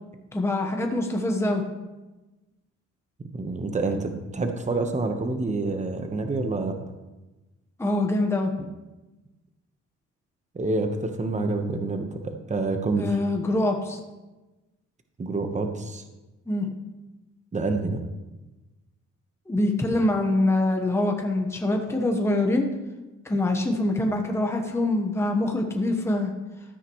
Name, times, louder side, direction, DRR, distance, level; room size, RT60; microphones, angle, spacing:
voice 1, 0.3-1.6 7.8-8.5 13.0-14.0 16.5-16.7 19.5-22.7 23.2-26.3, left 2 dB, 10° left, 2 dB, 1.2 m, -24 dB
voice 2, 3.2-6.8 8.6-8.7 10.5-13.1 15.2-16.0 17.5-18.0, right 3 dB, 25° right, 5 dB, 1.2 m, -27 dB
13.5 x 8.9 x 3.2 m, 1.1 s
cardioid pair, 90°, 30 cm